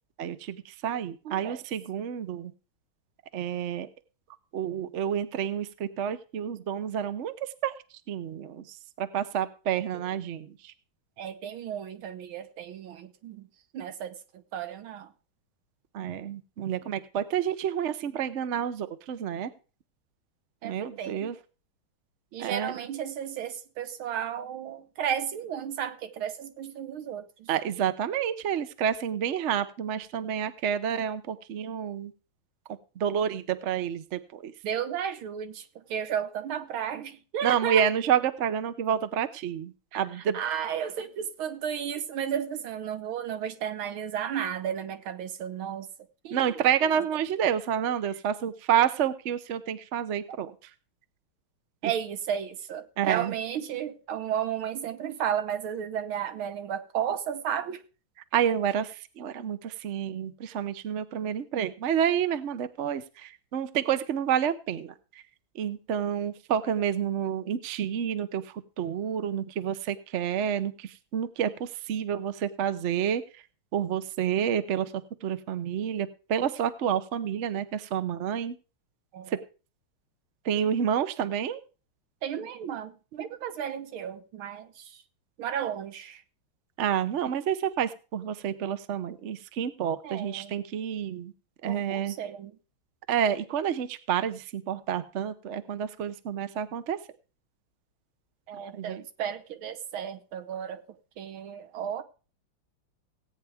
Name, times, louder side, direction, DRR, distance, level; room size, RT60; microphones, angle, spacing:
voice 1, 0.2-2.5 3.3-3.9 4.5-7.3 7.6-7.7 8.1-10.7 15.9-19.5 20.6-21.3 22.4-22.7 27.5-32.1 33.0-34.5 37.4-40.4 46.3-50.5 51.8-51.9 53.0-53.3 58.3-64.9 65.5-73.2 73.7-78.6 79.3-79.4 80.4-81.6 86.8-91.3 91.6-92.1 93.1-97.0 98.7-99.0, right 9 dB, 60° right, 0.7 m, -29 dB
voice 2, 1.3-1.6 9.9-10.0 11.2-13.5 13.7-14.2 14.5-15.1 20.6-21.3 22.3-27.5 34.6-37.8 39.9-45.9 46.2-46.5 46.8-47.1 51.8-57.8 79.1-79.4 82.2-85.0 85.4-86.2 90.0-90.6 91.7-92.6 98.5-102.0, right 9 dB, 80° right, 1.8 m, -33 dB
17.0 x 9.0 x 3.5 m
omnidirectional pair, 2.2 m